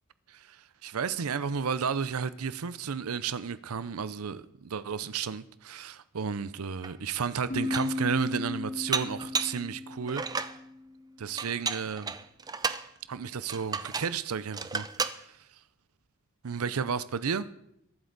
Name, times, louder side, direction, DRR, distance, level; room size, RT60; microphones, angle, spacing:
voice 1, 0.8-10.2 11.2-12.1 13.1-14.9 16.4-17.5, right 6 dB, 85° right, 0.6 m, -32 dB
Dishes pots and pans, 6.8-6.9 7.4-8.0 8.9-9.6 10.1-10.6 11.4-12.9 13.5-14.2 14.5-15.2, right 5 dB, 20° right, 0.5 m, -33 dB
sound 1, 7.5-11.1, left 2 dB, 35° left, 1.2 m, -36 dB
22.5 x 7.9 x 4.0 m
head